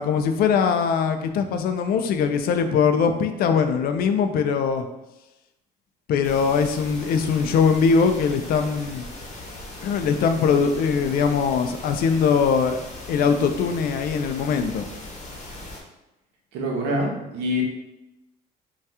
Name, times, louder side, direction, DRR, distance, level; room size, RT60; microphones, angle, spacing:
voice 1, 0.0-4.9 6.1-9.1 9.8-12.8 13.1-14.9, left 6 dB, 65° left, 7 dB, 0.4 m, -21 dB
sound 1, 6.2-15.8, left 2 dB, 45° left, 0.8 m, -39 dB
voice 2, 16.5-17.6, equal, 85° right, 0 dB, 0.8 m, -25 dB
2.8 x 2.3 x 3.3 m, 0.95 s
cardioid pair, 110°, 17 cm